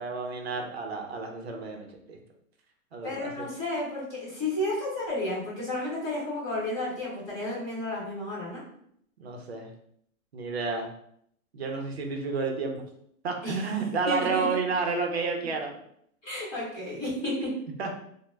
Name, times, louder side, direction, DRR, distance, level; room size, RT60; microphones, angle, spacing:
voice 1, 0.0-2.2 2.9-3.5 9.2-9.7 10.3-10.9 11.5-12.8 13.2-15.8 17.8-17.9, right 4 dB, 50° right, 2 dB, 0.6 m, -31 dB
voice 2, 3.0-8.6 13.4-13.7 14.1-14.5 16.2-17.5, left 1 dB, 25° left, -6 dB, 1.3 m, -32 dB
3.0 x 2.1 x 3.2 m, 0.69 s
hypercardioid pair, 180°, 42 cm